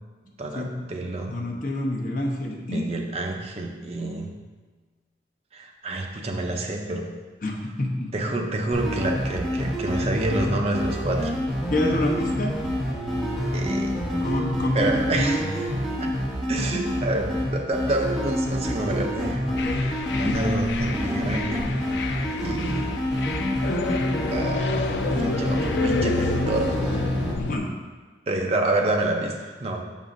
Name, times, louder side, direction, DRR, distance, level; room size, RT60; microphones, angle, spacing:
voice 1, 0.4-1.5 2.7-4.4 5.5-7.2 8.1-11.4 13.5-14.0 14.7-15.6 16.0-16.2 16.5-21.8 22.4-23.1 24.3-27.3 28.3-29.8, right 2 dB, 35° right, 2 dB, 0.5 m, -28 dB
voice 2, 1.3-2.9 7.4-8.1 11.7-12.5 14.2-15.5 19.5-19.8 20.1-20.4 25.5-25.9 26.2-26.3 27.4-27.7, left 1 dB, 50° left, 0 dB, 0.8 m, -28 dB
sound 1, 8.7-27.3, equal, ahead, 0.9 m, -27 dB
sound 2, 19.6-27.6, left 4 dB, 75° left, 0.4 m, -30 dB
6.9 x 5.3 x 2.5 m, 1.4 s
head